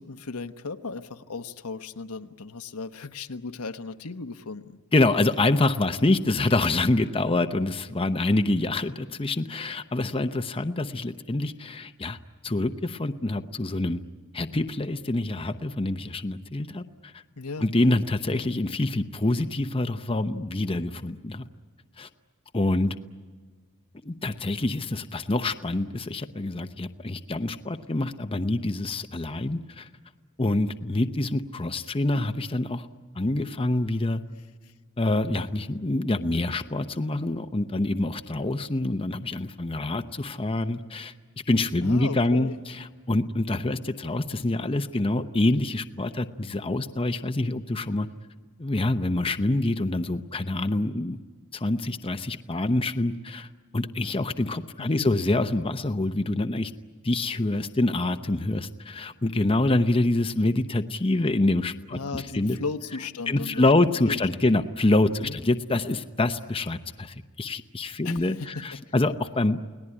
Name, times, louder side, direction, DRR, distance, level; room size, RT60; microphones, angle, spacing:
voice 1, 0.0-4.8 17.4-17.7 41.8-42.6 54.8-55.1 61.9-63.7 64.1-64.6 65.2-65.4 68.0-68.8, left 4 dB, 90° left, 8 dB, 1.2 m, -36 dB
voice 2, 4.9-12.2 12.4-14.0 14.3-17.1 17.6-21.4 22.0-22.1 22.5-22.9 24.0-29.9 30.4-32.9 33.2-34.2 35.0-41.1 41.5-48.1 48.6-51.2 51.5-53.5 53.7-56.7 57.0-62.6 63.3-69.6, left 2 dB, 25° left, 8 dB, 0.8 m, -26 dB
29.5 x 19.0 x 9.9 m, 1.5 s
head